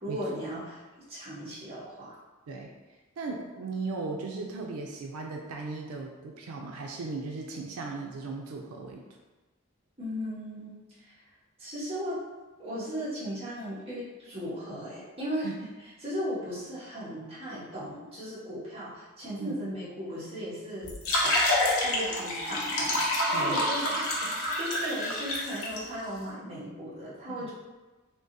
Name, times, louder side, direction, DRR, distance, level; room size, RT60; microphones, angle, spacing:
voice 1, 0.0-0.8 1.1-2.1 10.0-11.1 11.6-12.2 12.6-15.5 16.0-20.9 21.2-21.3 21.8-27.5, equal, 30° right, -10 dB, 1.4 m, -37 dB
voice 2, 3.2-9.0 15.4-15.5 19.4-19.6 23.3-23.6 24.2-24.3 24.8-24.9 27.4-27.5, right 3 dB, 85° right, 1 dB, 0.4 m, -37 dB
sound 1, 20.8-25.8, left 1 dB, 75° left, 0.8 m, -28 dB
3.5 x 3.1 x 2.7 m, 1.2 s
head